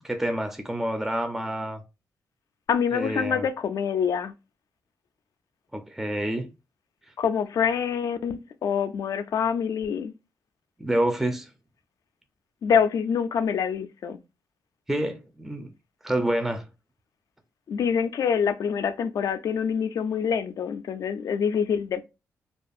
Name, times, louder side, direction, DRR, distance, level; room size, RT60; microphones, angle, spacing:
voice 1, 0.0-1.8 2.9-3.4 5.7-6.5 10.8-11.5 14.9-15.7 16.0-16.7, right 1 dB, 5° right, 0.4 m, -28 dB
voice 2, 2.7-4.3 7.2-10.1 12.6-14.2 17.7-22.0, left 7 dB, 65° left, 0.3 m, -26 dB
2.4 x 2.3 x 2.6 m
cardioid pair, 65°, 6 cm